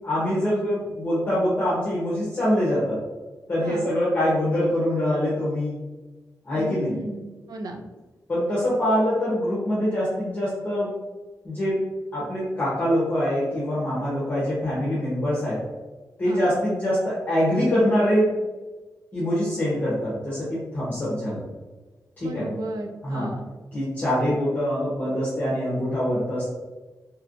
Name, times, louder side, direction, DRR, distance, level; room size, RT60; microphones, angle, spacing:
voice 1, 0.0-3.0 3.5-5.8 6.5-6.9 8.3-10.9 11.4-11.8 12.1-15.6 16.2-18.3 19.1-21.4 22.2-22.4 23.0-23.3 23.7-26.5, equal, 25° left, -9 dB, 0.9 m, -24 dB
voice 2, 3.6-4.0 6.5-7.8 16.2-16.5 22.2-23.4, right 2 dB, 75° right, 3 dB, 0.4 m, -35 dB
3.3 x 2.8 x 2.5 m, 1.2 s
wide cardioid pair, 160°, 7 cm